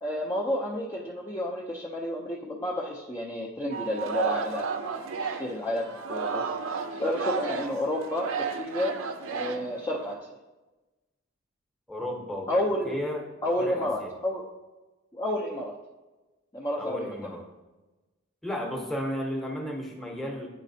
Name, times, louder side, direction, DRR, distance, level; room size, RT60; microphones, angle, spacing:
voice 1, 0.0-4.6 5.4-6.5 7.0-9.0 9.3-10.2 12.5-13.0 13.4-14.4 15.1-15.7 16.5-17.1, left 1 dB, 15° left, -3 dB, 0.5 m, -30 dB
Singing, 3.7-10.1, right 5 dB, 75° right, 0.6 m, -33 dB
voice 2, 11.9-12.5 12.8-13.3 13.6-14.1 16.8-17.4 18.4-20.5, equal, ahead, 0 dB, 0.8 m, -33 dB
9.9 x 4.1 x 2.7 m, 1.1 s
head